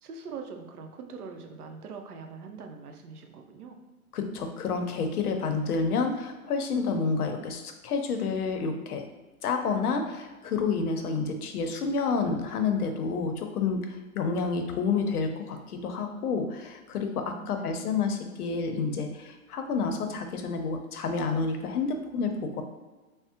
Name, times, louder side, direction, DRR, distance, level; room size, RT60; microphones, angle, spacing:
voice 1, 0.0-3.8 17.2-18.1, right 5 dB, 85° right, 5 dB, 0.7 m, -43 dB
voice 2, 4.1-9.0 9.4-22.6, left 4 dB, 85° left, 6 dB, 0.7 m, -29 dB
3.5 x 2.0 x 2.7 m, 1.2 s
hypercardioid pair, 170°, 44 cm